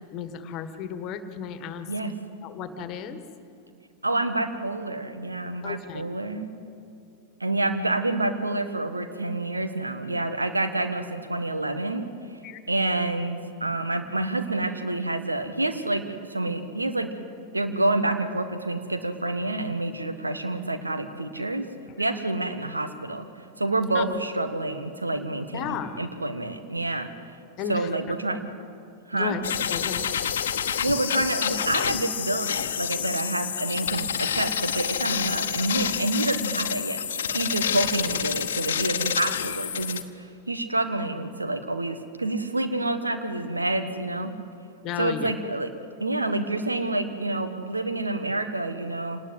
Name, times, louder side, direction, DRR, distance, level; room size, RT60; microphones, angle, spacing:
voice 1, 0.1-1.9 2.4-3.2 5.6-6.0 12.4-12.6 24.0-24.1 25.5-26.0 27.6-27.9 29.1-29.4 29.7-30.0 44.8-45.3, left 8 dB, 35° left, 10 dB, 1.6 m, -33 dB
voice 2, 4.0-6.5 7.4-12.1 12.7-17.1 17.5-21.7 22.0-23.2 23.6-27.1 27.7-28.4 29.1-29.4 30.8-44.3 45.0-45.7 46.0-49.2, right 2 dB, 80° right, 8 dB, 1.5 m, -28 dB
sound 1, 29.4-40.0, left 8 dB, 65° left, 1.0 m, -28 dB
26.5 x 19.5 x 8.0 m, 2.6 s
figure-of-eight pair, 90°, 0 cm